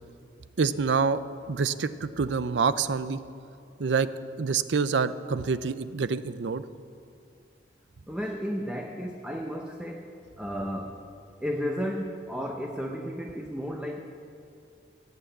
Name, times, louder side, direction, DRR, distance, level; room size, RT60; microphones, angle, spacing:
voice 1, 0.6-1.2 1.5-3.2 3.8-4.1 4.4-6.7, right 5 dB, 90° right, 14 dB, 0.5 m, -26 dB
voice 2, 8.1-11.0 11.4-14.0, equal, 5° right, 1 dB, 0.8 m, -33 dB
17.5 x 8.3 x 7.9 m, 2.5 s
head